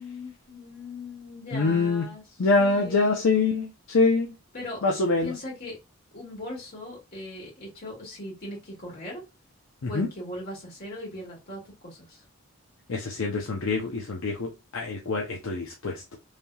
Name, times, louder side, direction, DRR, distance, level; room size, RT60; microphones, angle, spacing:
voice 1, 0.0-3.4 4.5-4.8 5.2-5.8 6.1-9.2 9.9-12.2, left 1 dB, 45° left, 1.9 m, -39 dB
voice 2, 1.5-2.1 2.4-4.3 4.8-5.3 9.9-10.1 12.9-16.2, left 3 dB, 65° left, 0.6 m, -25 dB
3.3 x 2.7 x 2.2 m
head